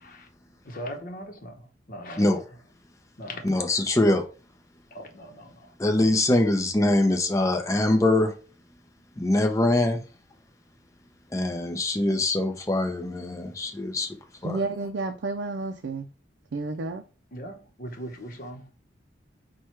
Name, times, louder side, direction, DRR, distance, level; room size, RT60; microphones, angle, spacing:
voice 1, 0.6-2.4 3.2-3.7 4.9-5.7 17.3-18.7, equal, 50° left, 0.9 m, -40 dB
voice 2, 3.4-4.3 5.8-8.3 9.2-10.0 11.3-14.2 14.4-14.6, left 1 dB, 20° left, 0.5 m, -23 dB
voice 3, 14.4-16.1 16.5-17.0, right 3 dB, 75° right, 0.4 m, -30 dB
4.7 x 2.3 x 4.3 m
head